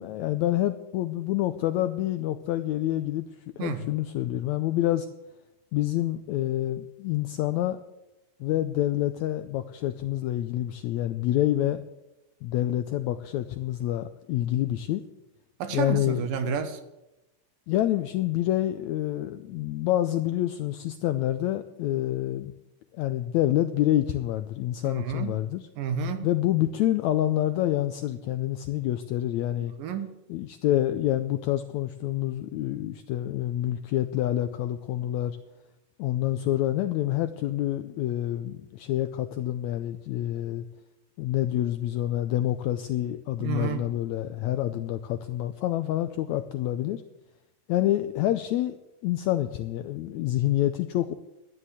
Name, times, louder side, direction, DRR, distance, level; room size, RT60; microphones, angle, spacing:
voice 1, 0.0-3.2 3.6-5.1 5.7-7.8 8.4-11.8 12.4-15.0 15.7-16.2 17.7-22.5 22.9-25.6 26.2-29.7 30.3-35.4 36.0-40.6 41.2-47.0 47.7-51.1, left 13 dB, 90° left, 10 dB, 1.6 m, -27 dB
voice 2, 15.6-16.8 24.8-25.3 25.8-26.3 29.8-30.1 43.4-43.9, right 7 dB, 90° right, 9 dB, 3.0 m, -30 dB
12.5 x 10.0 x 8.1 m, 0.97 s
omnidirectional pair, 3.9 m